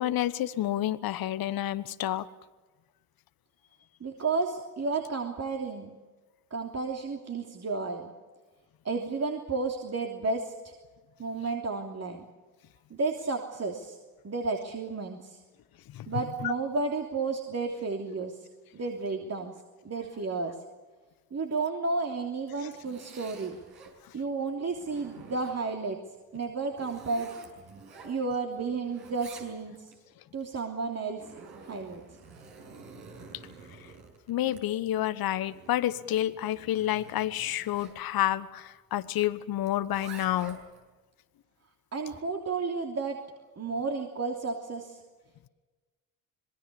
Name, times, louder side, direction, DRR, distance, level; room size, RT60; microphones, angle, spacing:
voice 1, 0.0-2.3 15.9-16.1 16.4-16.5 34.3-40.6, left 13 dB, 50° left, 15 dB, 1.2 m, -29 dB
voice 2, 4.0-5.9 6.5-8.1 8.8-10.7 11.2-12.2 12.9-14.0 14.2-15.4 16.1-18.4 18.7-19.5 19.8-20.5 21.3-23.5 24.1-26.0 26.3-27.3 28.0-29.9 30.3-31.2 31.7-32.0 41.9-43.2 43.6-45.0, right 4 dB, 35° right, 2 dB, 3.2 m, -32 dB
Zipper (clothing), 22.4-24.0 24.5-25.8 26.3-28.6 28.8-30.0 30.8-38.0 39.6-40.8, right 4 dB, 60° right, 6.9 m, -50 dB
26.5 x 21.0 x 7.0 m, 1.3 s
hypercardioid pair, 55°, 44 cm